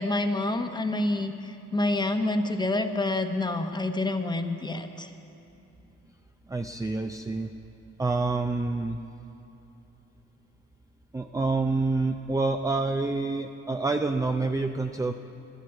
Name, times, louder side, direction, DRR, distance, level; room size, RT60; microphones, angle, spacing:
voice 1, 0.0-5.1, left 2 dB, 15° left, 7 dB, 1.0 m, -28 dB
voice 2, 6.5-7.5 8.0-9.0 11.1-15.1, right 3 dB, 10° right, 5 dB, 0.5 m, -27 dB
13.0 x 12.0 x 8.1 m, 2.8 s
cardioid pair, 90°, 30 cm